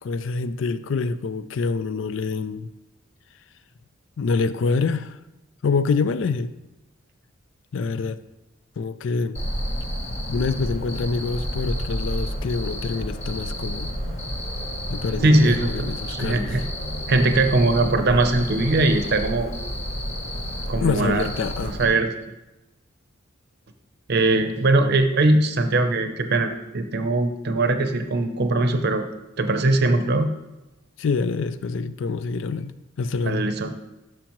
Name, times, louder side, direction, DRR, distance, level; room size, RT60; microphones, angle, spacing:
voice 1, 0.0-2.7 4.2-5.2 5.6-6.5 7.7-8.2 8.8-9.4 10.3-13.9 14.9-16.6 20.8-21.8 31.0-33.4, left 4 dB, 65° left, 0.4 m, -26 dB
Cricket, 9.3-21.8, equal, 35° left, 1.2 m, -30 dB
voice 2, 15.2-16.6 17.1-19.5 20.7-21.3 21.6-22.1 24.1-29.1 29.4-30.3 33.2-33.8, right 2 dB, 55° right, 0.6 m, -21 dB
11.5 x 6.1 x 3.0 m
head